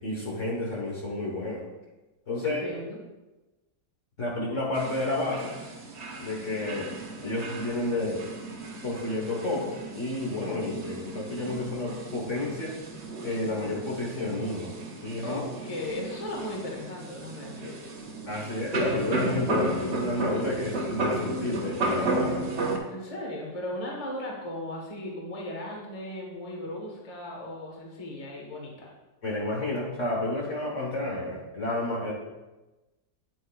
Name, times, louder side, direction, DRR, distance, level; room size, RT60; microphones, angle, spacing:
voice 1, 0.0-1.7 2.3-2.8 4.2-5.5 6.2-6.9 7.2-8.2 8.8-12.8 13.2-14.7 15.0-15.4 18.3-22.4 29.2-32.1, left 2 dB, 45° left, -3 dB, 1.5 m, -31 dB
voice 2, 2.4-3.0 15.2-17.9 22.9-28.9, left 1 dB, 20° left, -2 dB, 1.3 m, -37 dB
sound 1, 4.7-22.8, right 2 dB, 45° right, 1.1 m, -34 dB
9.1 x 7.9 x 2.4 m, 1.1 s
omnidirectional pair, 1.9 m